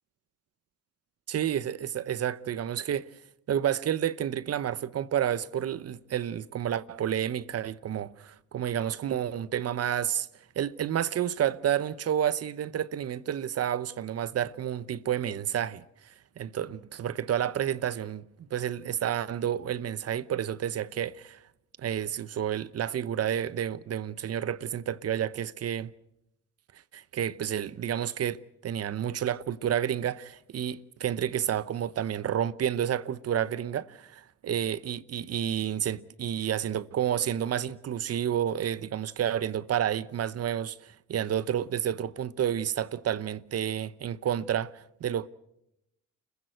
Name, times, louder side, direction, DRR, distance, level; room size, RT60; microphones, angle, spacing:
voice 1, 1.3-3.1 3.5-10.3 10.6-15.8 16.4-21.4 21.8-25.9 26.9-45.3, right 10 dB, 55° right, 0.9 m, -30 dB
29.5 x 15.5 x 8.0 m
cardioid pair, 90°, 30 cm